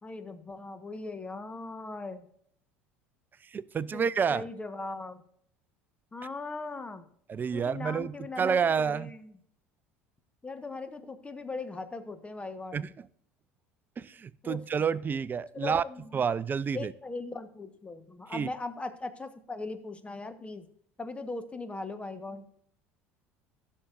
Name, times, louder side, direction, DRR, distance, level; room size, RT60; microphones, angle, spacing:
voice 1, 0.0-2.2 3.9-5.2 6.1-7.1 7.5-9.4 10.4-12.9 14.4-14.6 15.5-16.2 16.7-20.7 21.0-22.5, left 3 dB, 20° left, 10 dB, 1.2 m, -39 dB
voice 2, 3.5-4.4 7.3-9.1 12.7-12.9 14.0-15.8 16.1-16.9 18.3-18.5, right 6 dB, 30° right, 19 dB, 0.5 m, -29 dB
15.5 x 6.5 x 2.6 m, 0.65 s
hypercardioid pair, 70°, 6 cm